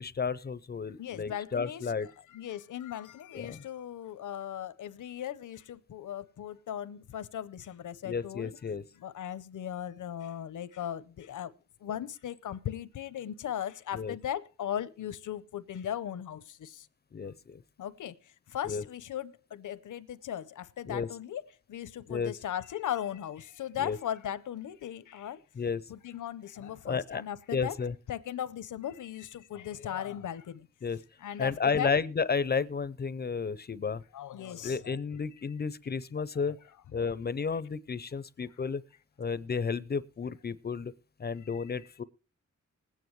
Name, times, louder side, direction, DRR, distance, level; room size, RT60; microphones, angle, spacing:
voice 1, 0.0-2.1 3.3-3.6 8.1-8.8 13.9-14.1 17.1-17.6 18.7-18.8 20.9-21.1 22.1-22.3 23.8-24.0 25.6-25.8 26.8-27.2 27.5-27.9 30.8-31.0 31.4-34.0 34.6-36.6 36.9-38.8 39.2-40.9 41.2-42.0, left 5 dB, 35° left, 0.5 m, -32 dB
voice 2, 1.0-8.5 9.0-11.5 11.8-16.7 17.8-18.1 18.5-21.4 21.7-25.4 25.9-27.8 28.1-30.4 31.2-32.0 34.1-34.9 36.5-36.6, left 10 dB, 85° left, 0.7 m, -38 dB
20.5 x 9.2 x 3.1 m
wide cardioid pair, 110°, 30 cm